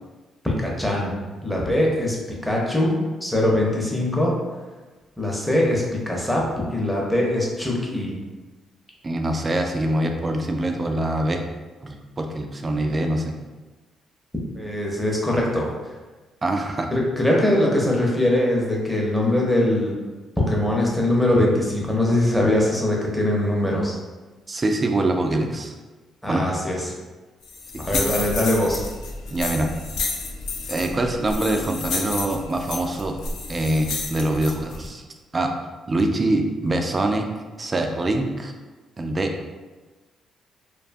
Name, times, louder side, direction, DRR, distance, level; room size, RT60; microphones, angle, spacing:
voice 1, 0.4-2.2 2.4-4.4 5.2-8.2 14.5-15.7 16.9-20.0 20.4-24.0 26.2-26.9 27.8-28.9, left 1 dB, 5° left, -3 dB, 0.6 m, -22 dB
voice 2, 9.0-11.4 11.8-13.4 16.4-16.9 24.5-25.7 26.3-26.5 27.7-28.0 29.3-29.7 30.7-33.2 33.5-35.0 35.3-35.5 35.9-37.2 37.6-38.5 39.0-39.3, right 1 dB, 30° right, 4 dB, 0.3 m, -24 dB
sound 1, 27.4-34.9, left 3 dB, 80° left, 0.4 m, -31 dB
2.5 x 2.3 x 2.5 m, 1.2 s
cardioid pair, 90°, 0 cm